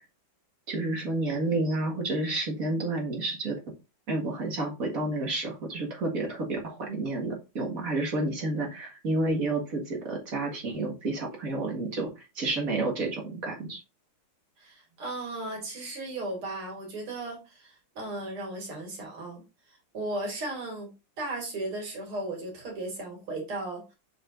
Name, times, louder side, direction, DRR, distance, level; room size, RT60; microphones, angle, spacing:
voice 1, 0.7-3.6 4.1-12.1 12.4-13.8, right 2 dB, 40° right, 1 dB, 2.1 m, -30 dB
voice 2, 14.6-19.4 19.9-20.9 21.2-23.8, right 2 dB, 75° right, 1 dB, 3.2 m, -36 dB
6.9 x 6.0 x 2.6 m, 0.27 s
omnidirectional pair, 2.4 m